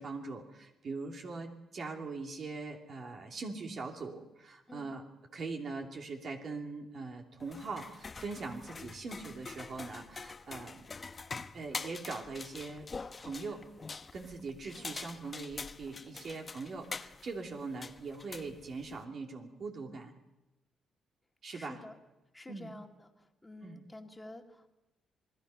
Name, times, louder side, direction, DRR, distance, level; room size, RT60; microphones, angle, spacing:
voice 1, 0.0-5.0 5.3-12.9 13.2-13.6 14.1-20.1 21.4-21.8 22.5-22.7 23.6-23.8, right 3 dB, 50° right, 2 dB, 2.7 m, -42 dB
sound 1, 7.4-19.0, left 4 dB, 30° left, 0.9 m, -45 dB
voice 2, 21.5-22.0 22.3-24.7, left 2 dB, 15° left, 4 dB, 2.3 m, -50 dB
27.0 x 19.5 x 5.7 m, 0.98 s
cardioid pair, 90°, 0 cm